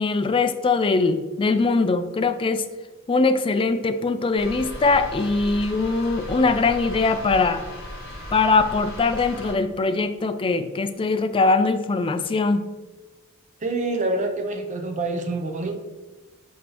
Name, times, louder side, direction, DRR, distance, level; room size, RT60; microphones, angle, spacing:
voice 1, 0.0-2.6 3.1-7.6 8.3-12.6, left 3 dB, 25° left, 9 dB, 0.3 m, -21 dB
sound 1, 4.4-9.5, equal, 45° left, 1.6 m, -36 dB
voice 2, 13.6-15.8, right 2 dB, 35° right, 3 dB, 0.6 m, -26 dB
6.3 x 5.1 x 2.9 m, 1.2 s
head